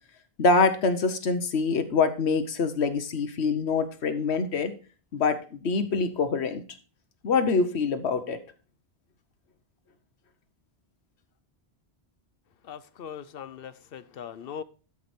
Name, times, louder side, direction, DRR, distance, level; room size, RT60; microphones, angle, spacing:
voice 1, 0.4-4.7 5.1-6.6 7.2-8.4, left 4 dB, 90° left, 1.2 m, -25 dB
voice 2, 12.7-14.6, left 8 dB, 65° left, 0.8 m, -40 dB
12.5 x 4.9 x 4.3 m
omnidirectional pair, 1.1 m